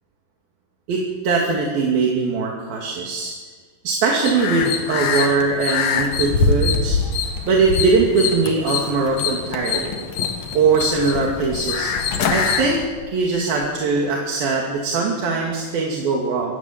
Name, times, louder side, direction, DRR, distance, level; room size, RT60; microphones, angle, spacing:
voice 1, 0.9-3.3 3.8-7.0 7.5-10.0 10.5-11.9 12.3-12.8 13.1-16.6, right 4 dB, 80° right, -1 dB, 4.3 m, -21 dB
sound 1, 4.2-12.9, left 7 dB, 85° left, 3.8 m, -26 dB
sound 2, 6.0-8.0 8.5-9.3 9.7-10.5 10.9-11.0 11.8-11.9 12.1-12.4 12.9-13.1 13.6-13.7, left 3 dB, 55° left, 2.8 m, -23 dB
24.5 x 19.0 x 7.5 m, 1.5 s
omnidirectional pair, 4.1 m